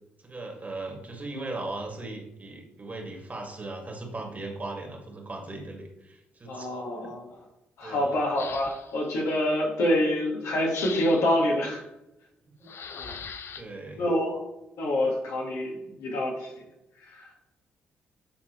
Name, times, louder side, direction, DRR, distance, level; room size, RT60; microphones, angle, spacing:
voice 1, 0.2-7.1 7.8-8.2 12.6-13.2 13.5-14.0, right 2 dB, 35° right, 1 dB, 1.9 m, -38 dB
voice 2, 6.5-7.2 7.8-11.8 13.0-13.1 14.0-14.4 14.8-16.5 17.1-17.2, left 1 dB, 70° left, -1 dB, 1.6 m, -26 dB
sound 1, 8.3-9.0 10.7-11.4 12.6-13.6, left 6 dB, 55° left, 0.5 m, -39 dB
8.6 x 4.0 x 3.0 m, 0.92 s
hypercardioid pair, 50°, 5 cm